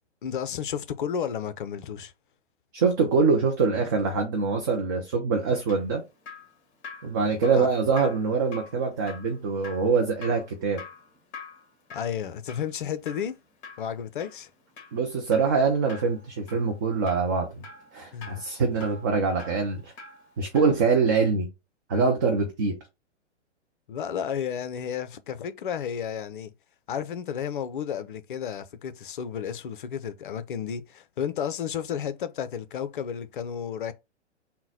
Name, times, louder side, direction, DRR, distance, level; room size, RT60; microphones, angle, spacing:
voice 1, 0.2-2.1 7.5-7.7 11.9-13.4 13.8-14.5 18.1-18.5 23.9-26.5 26.9-33.9, left 8 dB, 45° left, 0.5 m, -32 dB
voice 2, 2.7-6.0 7.0-10.8 14.9-17.6 17.9-19.9 20.4-21.5 21.9-22.8, right 4 dB, 20° right, 0.4 m, -24 dB
Drip, 5.4-20.9 21.1-21.3, left 4 dB, 20° left, 1.1 m, -46 dB
3.8 x 2.1 x 4.0 m
figure-of-eight pair, 115°, 35 cm